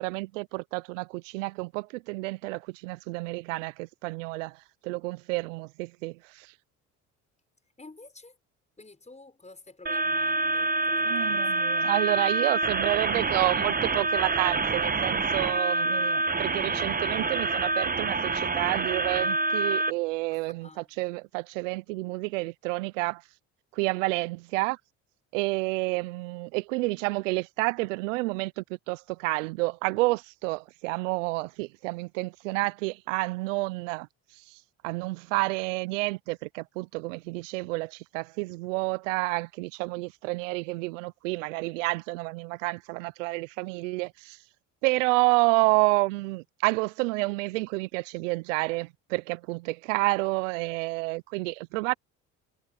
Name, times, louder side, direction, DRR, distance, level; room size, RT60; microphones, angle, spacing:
voice 1, 0.0-4.6 4.8-6.5 11.1-23.2 23.7-24.8 25.3-34.1 34.5-34.6 34.8-44.4 44.8-51.9, right 24 dB, 90° right, 0.6 m, -29 dB
voice 2, 7.8-8.4 8.8-11.7 12.2-12.7 20.3-20.9, left 3 dB, 20° left, 6.0 m, -50 dB
sound 1, 9.9-19.9, right 3 dB, 25° right, 1.3 m, -27 dB
hypercardioid pair, 65°, 37 cm